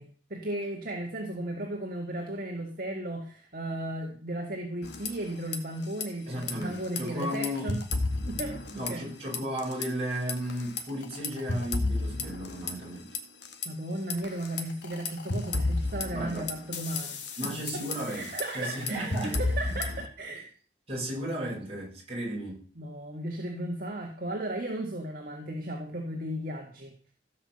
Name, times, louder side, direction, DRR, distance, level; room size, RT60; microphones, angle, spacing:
voice 1, 0.0-7.8 8.3-9.1 13.7-17.8 18.1-20.5 22.8-27.1, right 1 dB, 50° right, 1.9 m, -35 dB
sound 1, 4.8-5.6 5.8-6.0 6.4-9.1 9.3-9.9 10.3-13.7 14.1-20.1, left 3 dB, 80° left, 2.0 m, -32 dB
voice 2, 6.3-7.8 8.7-13.1 16.1-16.5 17.4-19.4 19.7-19.8 20.9-22.7, equal, 35° right, 6.4 m, -34 dB
16.0 x 5.7 x 7.8 m
head